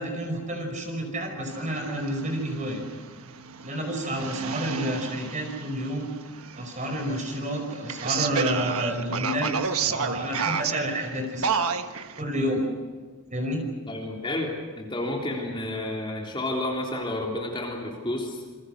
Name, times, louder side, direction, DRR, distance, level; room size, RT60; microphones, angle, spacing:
voice 1, 0.0-2.8 3.6-6.1 6.6-11.7 12.2-12.7 13.3-13.6, equal, 35° right, 3 dB, 5.3 m, -30 dB
sound 1, 1.5-12.2, right 6 dB, 75° right, 1.3 m, -32 dB
voice 2, 13.9-18.4, left 1 dB, 20° left, -1 dB, 3.6 m, -30 dB
28.0 x 23.0 x 6.5 m, 1.5 s
head